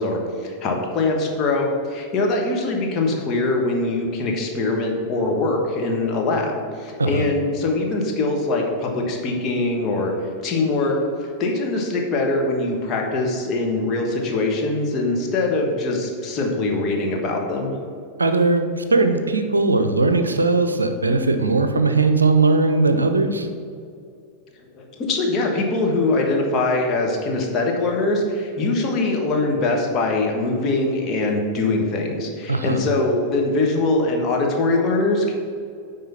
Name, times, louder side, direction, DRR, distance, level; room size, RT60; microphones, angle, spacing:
voice 1, 0.0-10.1 10.4-10.9 11.4-17.7 24.8-35.3, left 2 dB, 30° left, 0 dB, 1.4 m, -22 dB
voice 2, 18.2-23.5 32.5-32.8, right 3 dB, 75° right, 8 dB, 0.6 m, -19 dB
9.3 x 3.8 x 5.7 m, 2.3 s
figure-of-eight pair, 90°, 0 cm